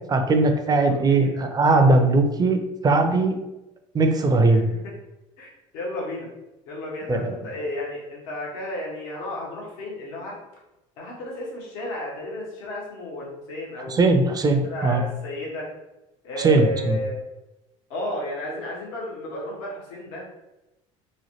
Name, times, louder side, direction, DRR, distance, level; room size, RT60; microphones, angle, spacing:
voice 1, 0.1-3.4 3.9-4.7 7.1-7.3 13.9-15.0 16.4-17.0, right 2 dB, 25° right, 5 dB, 0.5 m, -19 dB
voice 2, 0.6-1.4 4.5-4.8 5.4-6.3 6.7-10.4 11.0-14.0 14.7-15.7 16.2-17.2 17.9-20.2, left 1 dB, 80° left, -4 dB, 1.0 m, -33 dB
3.1 x 2.1 x 2.8 m, 0.96 s
hypercardioid pair, 80°, 16 cm